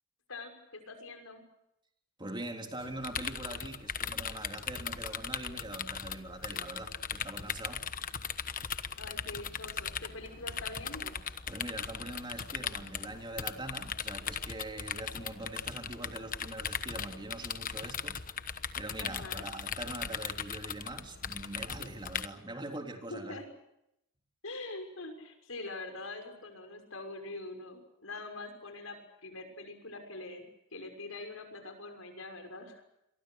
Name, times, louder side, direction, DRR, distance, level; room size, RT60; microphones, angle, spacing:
voice 1, 0.3-1.4 9.0-11.2 19.0-19.4 23.1-23.4 24.4-30.4 30.7-32.8, left 2 dB, 80° left, 5 dB, 6.1 m, -44 dB
voice 2, 2.2-7.9 11.5-18.2 18.8-23.4, right 2 dB, 25° right, 3 dB, 3.5 m, -43 dB
sound 1, 2.8-22.3, left 7 dB, 45° left, 1.2 m, -39 dB
29.0 x 23.5 x 6.5 m, 0.81 s
head